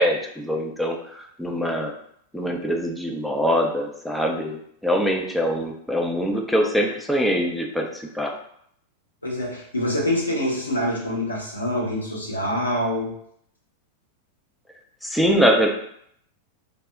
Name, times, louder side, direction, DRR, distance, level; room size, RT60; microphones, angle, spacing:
voice 1, 0.0-1.9 2.3-8.3 15.0-15.7, equal, ahead, 0 dB, 0.4 m, -23 dB
voice 2, 9.2-13.1, left 1 dB, 80° left, -4 dB, 0.7 m, -25 dB
2.1 x 2.0 x 3.5 m, 0.69 s
figure-of-eight pair, 90°, 0 cm